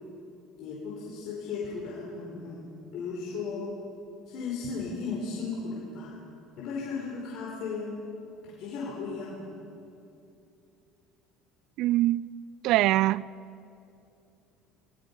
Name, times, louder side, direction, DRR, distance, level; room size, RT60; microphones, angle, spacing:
voice 1, 0.6-2.6 2.9-3.7 4.3-6.2 6.6-8.0 8.4-9.4, left 4 dB, 60° left, 4.7 m, -35 dB
voice 2, 11.8-12.3 12.6-13.2, right 16 dB, 65° right, 0.4 m, -23 dB
27.0 x 18.5 x 5.5 m
cardioid pair, 120°, 0 cm